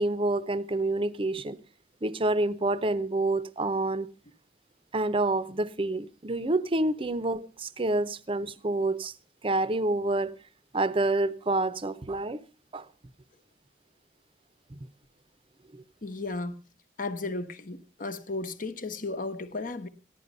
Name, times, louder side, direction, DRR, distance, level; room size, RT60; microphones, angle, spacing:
voice 1, 0.0-1.6 2.0-4.1 4.9-9.1 9.4-10.3 10.7-12.4 12.7-12.9 14.7-14.8 15.7-15.8, right 2 dB, 30° right, 0.7 m, -28 dB
voice 2, 16.0-16.6 17.0-19.9, left 3 dB, 50° left, 1.1 m, -34 dB
15.0 x 11.0 x 5.3 m
head